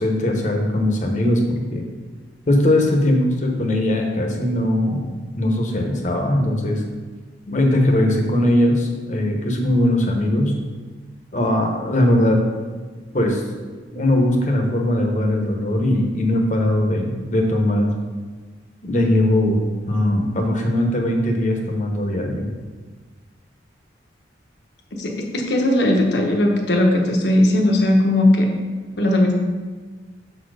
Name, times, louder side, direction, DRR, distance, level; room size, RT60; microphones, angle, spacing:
voice 1, 0.0-1.9 2.5-5.1 5.4-6.8 7.5-10.6 11.3-12.4 13.1-13.4 13.9-17.9 18.8-19.6 19.9-22.5, left 1 dB, 40° left, 2 dB, 1.0 m, -20 dB
voice 2, 24.9-28.5 29.0-29.3, left 1 dB, 65° left, 1 dB, 1.1 m, -18 dB
7.0 x 4.2 x 4.8 m, 1.4 s
head